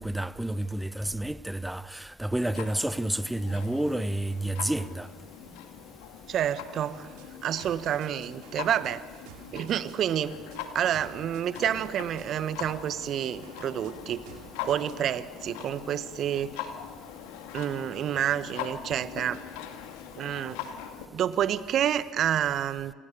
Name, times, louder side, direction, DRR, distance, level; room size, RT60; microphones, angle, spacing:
voice 1, 0.0-5.1, right 1 dB, 5° right, 1.1 m, -30 dB
Clock, 2.5-21.1, left 9 dB, 75° left, 2.4 m, -42 dB
voice 2, 6.3-7.1 7.4-9.0 9.5-10.4 10.7-14.2 14.6-16.5 17.5-19.4 20.1-20.6 21.1-22.9, right 10 dB, 55° right, 1.4 m, -29 dB
sound 1, 6.8-15.1, right 8 dB, 70° right, 4.4 m, -53 dB
29.0 x 28.0 x 7.0 m
hypercardioid pair, 60°, 0 cm